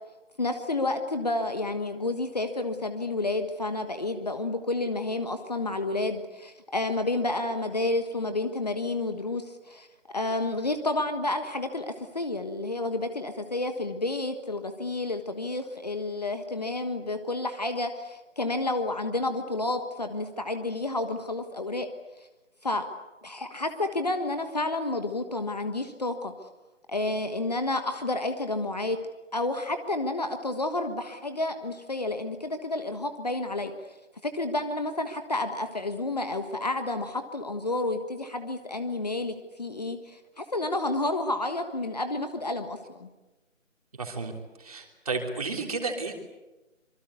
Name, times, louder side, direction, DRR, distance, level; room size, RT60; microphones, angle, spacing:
voice 1, 0.4-9.9 10.1-21.9 22.6-22.9 23.2-26.3 26.9-29.0 29.3-33.7 34.2-43.1, left 2 dB, 30° left, 8 dB, 1.5 m, -30 dB
voice 2, 44.0-44.3 44.6-46.1, right 3 dB, 30° right, 3 dB, 3.3 m, -32 dB
26.0 x 24.0 x 8.3 m, 1.1 s
figure-of-eight pair, 170°, 39 cm